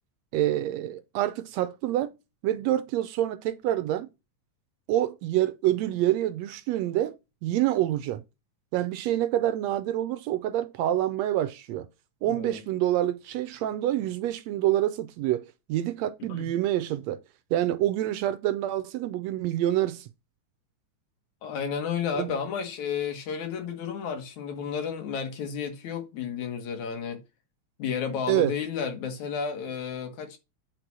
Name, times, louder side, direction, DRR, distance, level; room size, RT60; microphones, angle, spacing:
voice 1, 0.3-2.1 2.4-4.1 4.9-7.1 7.4-8.2 8.7-11.9 12.2-17.2 17.5-20.1 22.2-22.3 28.3-28.5, right 13 dB, 75° right, 1.7 m, -27 dB
voice 2, 12.2-12.6 16.3-16.5 21.4-27.2 27.8-30.4, left 6 dB, 75° left, 2.9 m, -32 dB
9.1 x 4.2 x 6.1 m
omnidirectional pair, 3.3 m